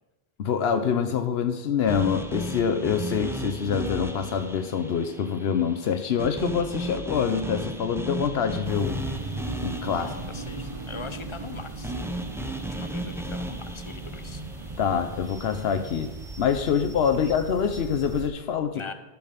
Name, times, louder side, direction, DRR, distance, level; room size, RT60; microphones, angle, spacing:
voice 1, 0.4-9.0 9.6-10.1 14.8-16.1 16.4-18.8, left 7 dB, 80° left, 8 dB, 0.9 m, -25 dB
sound 1, 1.9-16.0, right 1 dB, 5° right, 0.6 m, -36 dB
sound 2, 8.6-18.3, right 3 dB, 35° right, 1.0 m, -38 dB
voice 2, 10.0-14.4 17.2-17.3 18.7-18.9, left 4 dB, 35° left, 9 dB, 0.7 m, -41 dB
13.5 x 6.2 x 5.1 m, 1.1 s
omnidirectional pair, 1.0 m